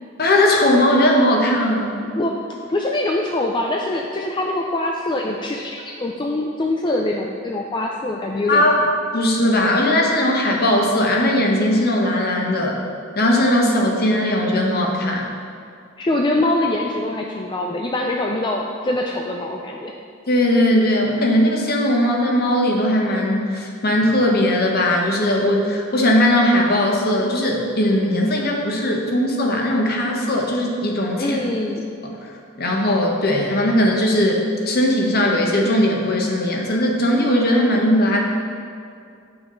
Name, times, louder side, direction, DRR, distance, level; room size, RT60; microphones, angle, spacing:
voice 1, 0.2-2.0 8.5-8.7 9.1-12.8 13.2-15.2 20.3-31.4 32.0-32.1 32.6-38.2, left 1 dB, 50° left, 0 dB, 1.1 m, -18 dB
voice 2, 2.7-8.7 16.0-19.9 31.2-31.8, left 1 dB, 25° left, 0 dB, 0.4 m, -23 dB
8.5 x 5.9 x 3.9 m, 2.4 s
head